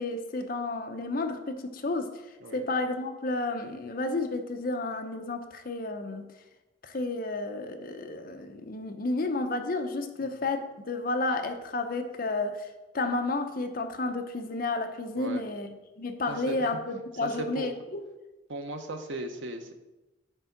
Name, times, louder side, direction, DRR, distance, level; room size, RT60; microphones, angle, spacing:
voice 1, 0.0-2.1 2.5-6.3 6.8-12.7 12.9-15.7 16.0-18.0, left 2 dB, 50° left, 6 dB, 0.7 m, -31 dB
voice 2, 16.3-16.8 17.2-17.7 18.5-19.7, right 2 dB, 80° right, 6 dB, 0.9 m, -37 dB
9.1 x 3.6 x 5.8 m, 1.1 s
head